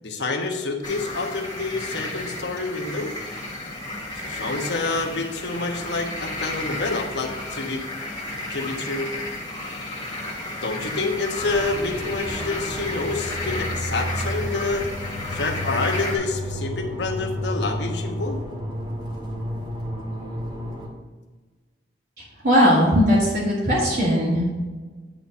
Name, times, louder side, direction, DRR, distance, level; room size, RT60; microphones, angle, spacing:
voice 1, 0.0-3.1 4.2-7.8 8.5-9.1 10.6-14.9 15.3-18.4, left 3 dB, 75° left, 2 dB, 1.1 m, -28 dB
sound 1, 0.8-16.2, left 2 dB, 25° left, 1.6 m, -33 dB
sound 2, 11.4-20.9, left 1 dB, 25° right, 2.0 m, -31 dB
voice 2, 22.4-24.5, equal, 65° right, -9 dB, 2.3 m, -18 dB
8.8 x 4.4 x 5.4 m, 1.3 s
head